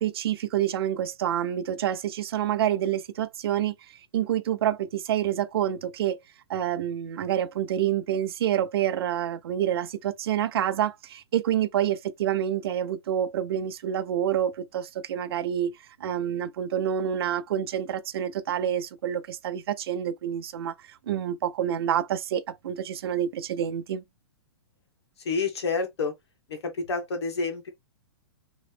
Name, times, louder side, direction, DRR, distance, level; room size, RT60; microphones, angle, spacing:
voice 1, 0.0-3.7 4.1-6.2 6.5-20.7 21.1-24.0, right 10 dB, 65° right, 0.5 m, -27 dB
voice 2, 25.2-26.1 26.8-27.7, left 4 dB, 80° left, 1.5 m, -28 dB
3.1 x 2.7 x 3.3 m
hypercardioid pair, 155°, 14 cm